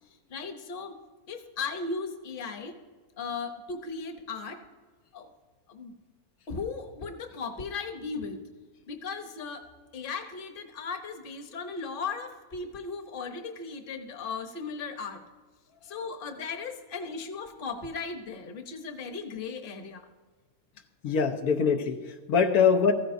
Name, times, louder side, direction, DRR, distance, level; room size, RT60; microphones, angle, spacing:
voice 1, 0.3-1.0 1.3-2.8 3.2-4.6 5.1-5.3 5.7-5.9 6.5-8.4 8.9-9.7 9.9-15.2 15.8-20.1, left 4 dB, 40° left, 6 dB, 1.0 m, -37 dB
voice 2, 21.0-22.9, left 6 dB, 85° left, 5 dB, 1.4 m, -23 dB
15.0 x 14.0 x 2.7 m, 1.4 s
omnidirectional pair, 1.5 m